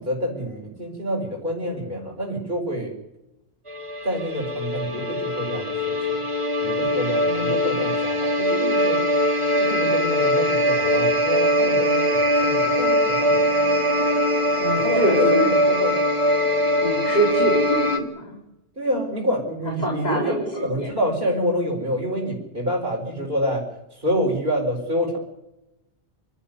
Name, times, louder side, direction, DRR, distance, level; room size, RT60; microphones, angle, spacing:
voice 1, 0.0-2.9 4.0-6.2 6.6-9.0 9.6-13.4 14.7-15.9 18.8-20.4 20.6-23.6 24.0-25.2, equal, 45° right, -4 dB, 5.2 m, -27 dB
sound 1, 3.7-18.0, equal, 25° right, 2.4 m, -21 dB
voice 2, 7.2-7.9 14.6-15.6 16.8-18.4 19.8-21.0, right 1 dB, 35° left, 0 dB, 3.9 m, -25 dB
28.5 x 13.5 x 9.5 m, 0.93 s
omnidirectional pair, 1.2 m